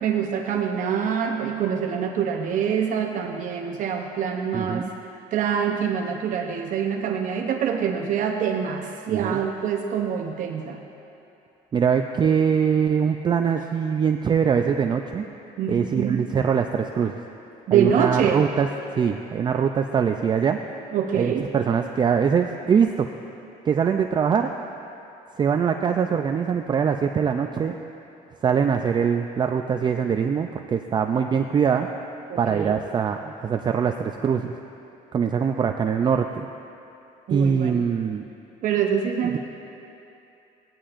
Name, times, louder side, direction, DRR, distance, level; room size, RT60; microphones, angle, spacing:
voice 1, 0.0-4.9 5.3-10.8 15.6-16.3 17.7-18.5 20.9-21.5 32.3-32.8 37.3-37.9 38.6-39.4, right 8 dB, 60° right, 2 dB, 0.8 m, -25 dB
voice 2, 4.5-4.9 9.1-9.4 11.7-15.2 15.7-17.2 17.7-18.7 19.0-20.6 21.1-23.1 23.7-24.5 25.4-27.8 28.4-31.9 32.4-34.5 35.1-36.5 37.3-38.2, right 7 dB, 30° right, 5 dB, 0.4 m, -23 dB
16.5 x 11.0 x 2.5 m, 2.8 s
cardioid pair, 115°, 15 cm